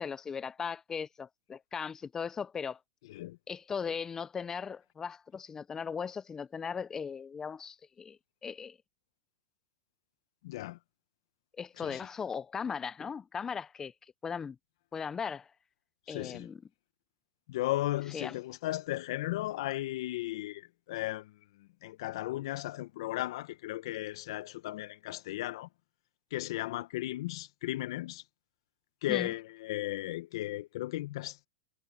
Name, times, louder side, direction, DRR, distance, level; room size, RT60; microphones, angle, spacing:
voice 1, 0.0-2.8 3.5-8.8 11.6-13.9 14.2-14.6 14.9-15.5 16.1-16.6 18.1-18.3 29.1-29.3, left 6 dB, 20° left, 0.7 m, -38 dB
voice 2, 10.4-10.8 11.8-12.0 16.1-16.5 17.5-25.7 26.3-28.2 29.0-31.5, left 16 dB, 65° left, 1.1 m, -36 dB
hypercardioid pair, 120°, 3 cm